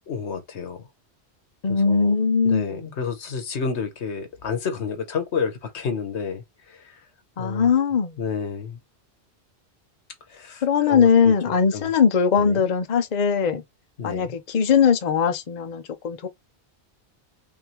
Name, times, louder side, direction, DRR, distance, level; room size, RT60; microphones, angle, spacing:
voice 1, 0.1-0.9 1.7-2.1 2.4-7.0 7.4-7.8 8.2-8.8 10.3-11.9 12.4-12.7 14.0-14.3, left 6 dB, 75° left, 1.3 m, -30 dB
voice 2, 1.6-2.9 7.4-8.1 10.6-13.6 14.0-16.3, left 6 dB, 45° left, 0.7 m, -20 dB
3.6 x 3.4 x 3.0 m
omnidirectional pair, 1.2 m